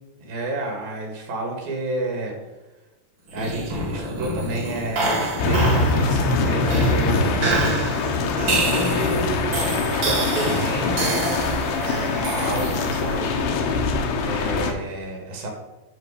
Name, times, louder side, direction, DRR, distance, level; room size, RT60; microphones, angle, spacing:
voice 1, 0.2-2.3 3.3-7.7 8.4-11.3 11.8-13.4 14.2-15.5, right 2 dB, 60° right, 1 dB, 3.3 m, -30 dB
sound 1, 3.3-13.2, right 2 dB, 40° right, 1.8 m, -27 dB
sound 2, 5.4-14.7, left 3 dB, 85° left, 3.4 m, -23 dB
10.0 x 6.5 x 4.9 m, 1.1 s
omnidirectional pair, 5.1 m